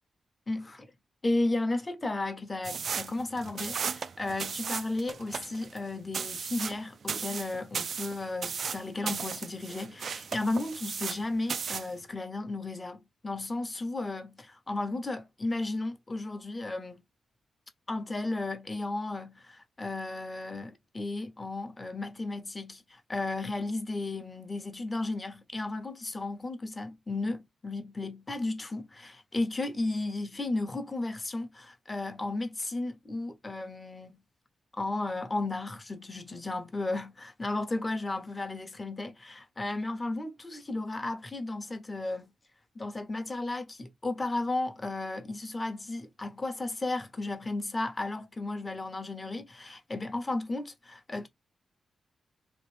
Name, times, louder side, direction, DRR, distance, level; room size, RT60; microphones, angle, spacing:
voice 1, 0.5-0.9 1.2-17.0 17.9-34.2 34.8-42.3 42.7-51.3, left 2 dB, 30° left, 0.9 m, -34 dB
sound 1, 2.6-11.2 11.5-11.9, right 6 dB, 65° right, 0.3 m, -35 dB
3.1 x 2.5 x 3.4 m
supercardioid pair, 50°, 0 cm